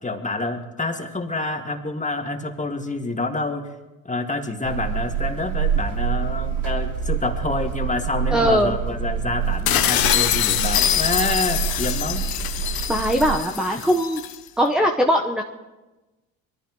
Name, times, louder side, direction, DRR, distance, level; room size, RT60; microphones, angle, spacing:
voice 1, 0.0-3.7 4.0-12.2, left 2 dB, 15° left, 4 dB, 2.1 m, -27 dB
sound 1, 4.6-13.3, right 8 dB, 70° right, 3.2 m, -27 dB
voice 2, 8.3-8.7 12.9-14.2 14.6-15.4, equal, ahead, 2 dB, 1.2 m, -20 dB
sound 2, 9.7-14.4, left 11 dB, 55° left, 1.2 m, -23 dB
22.5 x 14.5 x 3.2 m, 1.1 s
hypercardioid pair, 65°, 42 cm